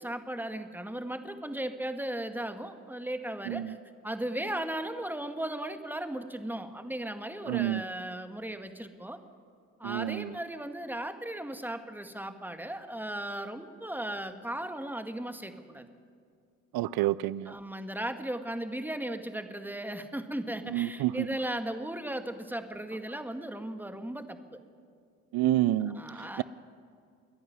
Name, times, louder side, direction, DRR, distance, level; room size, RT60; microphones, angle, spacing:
voice 1, 0.0-3.8 4.0-9.2 9.8-15.9 17.5-24.4 25.8-26.4, right 1 dB, 5° right, 1.9 m, -36 dB
voice 2, 7.5-7.8 9.8-10.3 16.7-17.5 20.7-21.3 25.3-26.0 26.4-26.5, right 14 dB, 65° right, 0.6 m, -28 dB
27.5 x 11.0 x 9.6 m
supercardioid pair, 55°, 39 cm